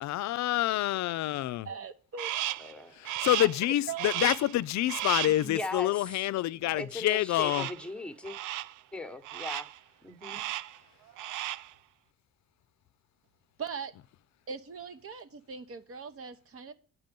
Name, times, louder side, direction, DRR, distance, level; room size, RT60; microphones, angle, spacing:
voice 1, 0.0-1.7 3.0-7.7, left 15 dB, 65° left, 0.5 m, -27 dB
voice 2, 1.6-2.3 3.4-3.5 3.9-4.1 13.6-13.9 14.5-16.7, right 6 dB, 50° right, 1.0 m, -40 dB
Crow, 2.2-2.7 3.1-3.6 4.0-4.6 4.9-5.5 7.4-7.9 8.3-8.8 9.2-9.8 10.2-10.8 11.1-11.7, right 13 dB, 80° right, 0.5 m, -35 dB
voice 3, 2.6-2.9 5.3-6.2 6.7-8.4 8.9-9.7 10.0-10.5, left 2 dB, 5° left, 1.0 m, -39 dB
9.1 x 6.0 x 5.2 m
cardioid pair, 90°, 30 cm